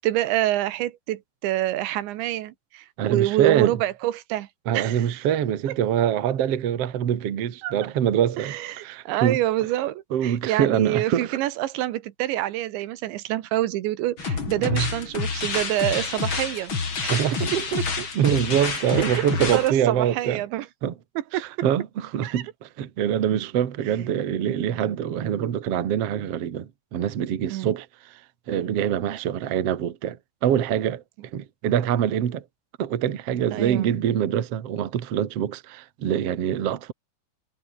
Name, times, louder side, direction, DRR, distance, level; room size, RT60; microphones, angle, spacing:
voice 1, 0.0-4.5 4.7-5.2 5.7-5.8 7.6-7.7 8.4-16.8 17.0-17.2 17.5-18.1 18.7-18.8 19.1-19.2 19.5-20.7 21.2-21.5 22.2-22.4 27.5-27.7 33.5-33.9, right 15 dB, 80° right, 3.5 m, -27 dB
voice 2, 3.0-3.8 4.7-9.4 10.1-11.4 14.6-14.9 17.1-17.8 18.1-20.4 20.8-20.9 21.3-28.2 28.5-31.0 31.3-32.4 32.8-36.9, right 9 dB, 50° right, 1.9 m, -25 dB
sound 1, 14.2-19.7, left 5 dB, 30° left, 3.4 m, -28 dB
omnidirectional pair, 5.3 m